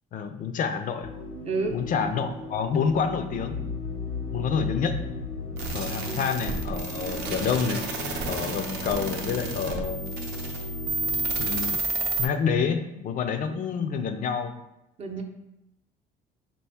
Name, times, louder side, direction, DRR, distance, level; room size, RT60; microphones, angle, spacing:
voice 1, 0.1-1.1 1.7-3.6 4.3-4.9 5.7-7.9 8.3-10.0 11.4-11.8 12.2-14.5, left 6 dB, 55° left, 8 dB, 0.4 m, -28 dB
sound 1, 1.0-11.8, left 3 dB, 85° left, 0.7 m, -36 dB
voice 2, 1.4-1.8 6.0-6.2 15.0-15.2, right 3 dB, 40° right, 3 dB, 0.6 m, -30 dB
sound 2, 5.6-12.3, right 2 dB, 85° right, 0.7 m, -31 dB
4.4 x 2.4 x 3.4 m, 0.87 s
cardioid pair, 110°, 17 cm